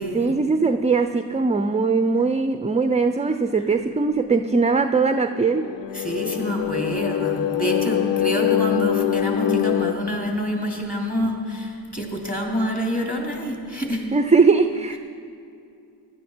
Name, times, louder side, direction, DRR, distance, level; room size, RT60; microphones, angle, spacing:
voice 1, 0.1-5.7 14.1-15.0, right 4 dB, 15° right, 9 dB, 0.5 m, -20 dB
sound 1, 4.9-9.9, left 11 dB, 85° left, 0.6 m, -24 dB
voice 2, 5.9-14.1, equal, 20° left, 0 dB, 3.2 m, -27 dB
16.5 x 12.0 x 4.6 m, 2.6 s
cardioid pair, 65°, 42 cm